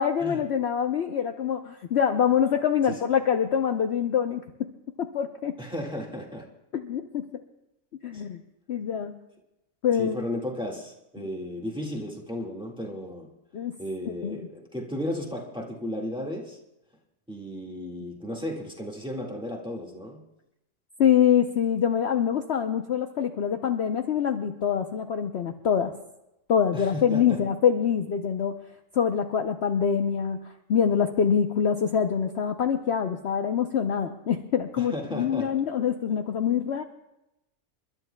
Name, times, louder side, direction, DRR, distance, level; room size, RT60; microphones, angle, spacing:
voice 1, 0.0-4.7 5.0-5.6 6.7-7.3 8.0-8.4 8.7-9.1 9.8-10.2 13.5-13.8 14.2-14.4 21.0-25.9 26.5-28.5 28.9-30.4 30.7-36.8, left 8 dB, 55° left, 5 dB, 0.9 m, -25 dB
voice 2, 5.6-6.5 8.1-8.2 9.9-13.3 13.8-16.6 17.3-20.2 26.7-27.4 34.8-35.6, left 1 dB, 5° right, -2 dB, 1.6 m, -34 dB
29.5 x 12.0 x 2.2 m, 0.90 s
omnidirectional pair, 1.5 m